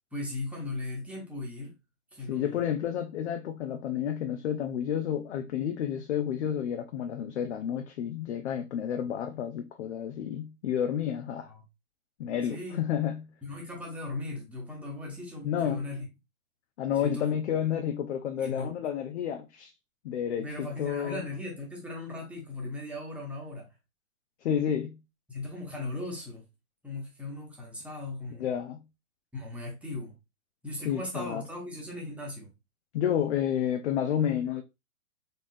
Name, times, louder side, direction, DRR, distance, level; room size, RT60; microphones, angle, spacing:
voice 1, 0.1-1.8 2.1-2.6 11.5-11.6 12.5-12.8 13.4-16.1 17.0-17.3 18.4-18.7 20.4-23.7 25.3-26.4 26.8-28.5 29.3-30.2 30.6-32.5, left 2 dB, 5° right, 1.1 m, -38 dB
voice 2, 2.3-11.5 12.2-13.3 15.4-15.8 16.8-19.7 20.0-21.2 24.4-25.0 28.4-28.8 30.8-31.4 32.9-34.6, left 9 dB, 50° left, 0.6 m, -30 dB
4.1 x 3.5 x 2.6 m
hypercardioid pair, 125°, 44 cm